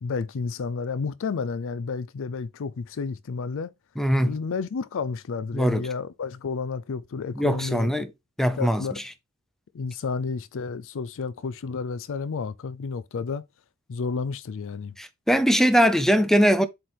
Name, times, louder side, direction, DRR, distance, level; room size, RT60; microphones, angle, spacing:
voice 1, 0.0-3.7 4.2-8.1 8.6-9.0 9.7-13.4 13.9-15.0, left 5 dB, 65° left, 0.4 m, -31 dB
voice 2, 4.0-4.4 5.5-5.9 7.4-8.1 8.4-9.0 15.0-16.7, equal, ahead, 0.6 m, -21 dB
7.5 x 3.3 x 4.4 m
head